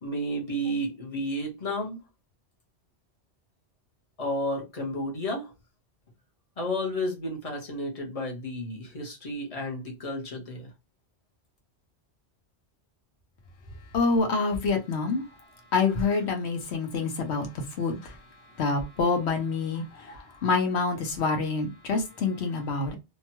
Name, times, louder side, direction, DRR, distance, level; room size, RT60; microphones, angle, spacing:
voice 1, 0.0-2.0 4.2-5.5 6.6-10.7, equal, 35° left, 0.9 m, -32 dB
voice 2, 13.9-15.2 15.7-18.2 18.6-22.9, left 4 dB, 70° left, 1.1 m, -27 dB
2.9 x 2.2 x 2.9 m
omnidirectional pair, 1.1 m